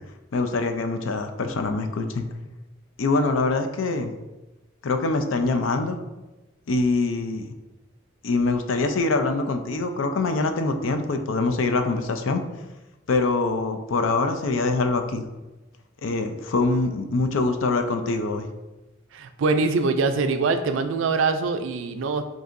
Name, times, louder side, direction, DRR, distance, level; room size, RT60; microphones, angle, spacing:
voice 1, 0.3-2.2 3.0-4.1 4.8-6.0 6.7-7.5 8.2-12.4 13.1-15.2 16.0-18.5, left 3 dB, 75° left, 7 dB, 0.5 m, -24 dB
voice 2, 19.1-22.2, right 4 dB, 70° right, 8 dB, 0.4 m, -23 dB
7.7 x 2.6 x 2.5 m, 1.1 s
head